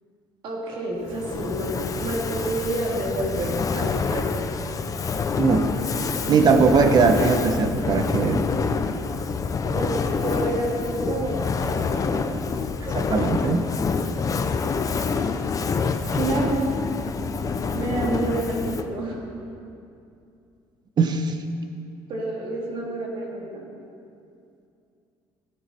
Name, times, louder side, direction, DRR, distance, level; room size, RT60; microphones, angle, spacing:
voice 1, 0.4-4.6 9.7-12.3 16.0-16.7 17.7-19.2 22.1-23.7, right 2 dB, 60° right, -3 dB, 3.8 m, -29 dB
Fire, 1.1-19.0, left 5 dB, 35° left, 0.8 m, -27 dB
voice 2, 5.4-5.7 6.3-8.5 12.8-13.7 21.0-21.3, right 5 dB, 45° right, 8 dB, 1.2 m, -20 dB
17.0 x 11.5 x 4.6 m, 2.5 s
cardioid pair, 95°, 10 cm